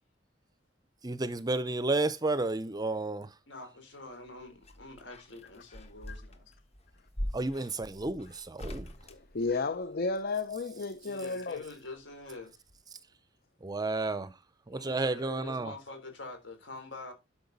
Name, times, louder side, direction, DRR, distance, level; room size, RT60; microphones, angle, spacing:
voice 1, 1.0-3.3 7.3-8.9 13.6-14.3 14.7-15.7, right 2 dB, 20° right, 0.6 m, -31 dB
voice 2, 3.5-6.5 11.0-12.5 14.7-17.1, left 2 dB, 70° left, 3.7 m, -46 dB
sound 1, 4.1-10.1 11.6-12.4 12.7-12.8, equal, 35° left, 1.3 m, -43 dB
voice 3, 9.0-11.6, left 3 dB, 50° left, 0.7 m, -33 dB
12.0 x 5.9 x 4.0 m
head